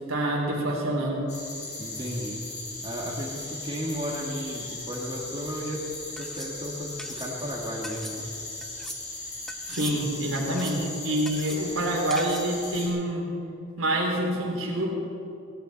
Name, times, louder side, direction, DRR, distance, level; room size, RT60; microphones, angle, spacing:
voice 1, 0.1-1.2 9.7-13.3 13.8-14.9, right 1 dB, 80° right, -1 dB, 3.2 m, -27 dB
sound 1, 1.3-12.9, left 2 dB, 35° left, 3.3 m, -38 dB
voice 2, 1.8-2.4 2.8-5.8 6.2-8.3, equal, 25° right, -3 dB, 2.0 m, -34 dB
sound 2, 5.6-5.8 6.2-6.5 7.0-7.3 7.8-8.2 8.6-9.0 9.5-10.0 10.4-10.8 11.3-11.6 12.1-12.5, equal, ahead, 0.7 m, -41 dB
17.0 x 16.5 x 4.1 m, 2.6 s
head